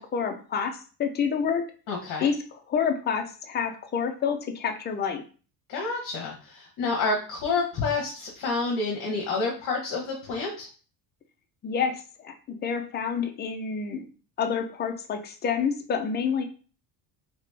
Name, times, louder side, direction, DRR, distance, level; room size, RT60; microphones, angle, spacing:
voice 1, 0.0-1.6 2.2-2.4 2.7-5.2 11.6-12.0 12.2-14.0 14.4-16.4, left 6 dB, 25° left, 4 dB, 0.4 m, -28 dB
voice 2, 1.9-2.3 5.7-10.7, left 3 dB, 45° left, -1 dB, 1.0 m, -29 dB
3.0 x 2.9 x 3.3 m, 0.38 s
cardioid pair, 140°, 45 cm